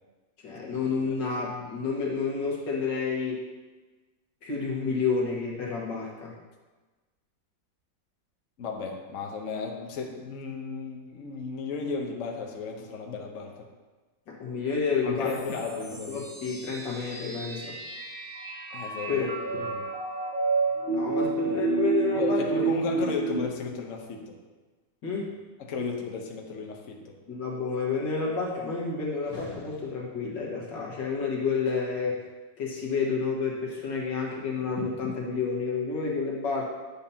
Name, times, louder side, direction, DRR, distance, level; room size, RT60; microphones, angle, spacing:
voice 1, 0.4-3.4 4.4-6.3 14.3-15.4 16.1-17.8 19.1-19.2 20.9-22.7 22.9-23.0 25.0-25.3 27.3-32.2 32.6-36.6, left 5 dB, 80° left, -3 dB, 2.1 m, -30 dB
voice 2, 8.6-13.5 15.0-16.2 18.7-19.9 22.2-24.4 25.6-27.2, left 4 dB, 50° left, 1 dB, 1.1 m, -34 dB
sound 1, 15.3-23.4, right 4 dB, 30° right, 1.6 m, -30 dB
10.0 x 7.0 x 2.8 m, 1.3 s
omnidirectional pair, 1.9 m